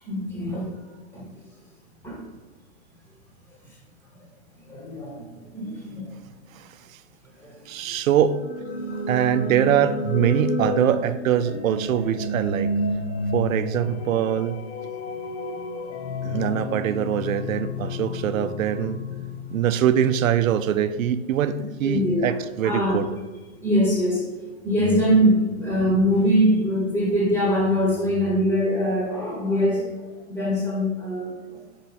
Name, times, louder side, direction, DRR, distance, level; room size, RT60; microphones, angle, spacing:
voice 1, 0.1-0.7 1.1-1.3 2.0-2.2 4.7-5.2 5.5-6.1 7.4-7.5 8.9-9.1 21.8-22.2 22.6-23.0 23.6-24.2 24.6-29.9 30.3-31.3, equal, 5° left, -5 dB, 1.1 m, -22 dB
voice 2, 6.5-7.0 7.7-8.4 9.1-12.7 13.3-14.6 16.2-19.0 19.5-23.1, right 9 dB, 80° right, 12 dB, 0.6 m, -23 dB
sound 1, 8.3-20.2, left 1 dB, 60° left, 1.1 m, -30 dB
5.8 x 4.3 x 4.1 m, 1.4 s
hypercardioid pair, 150°, 40 cm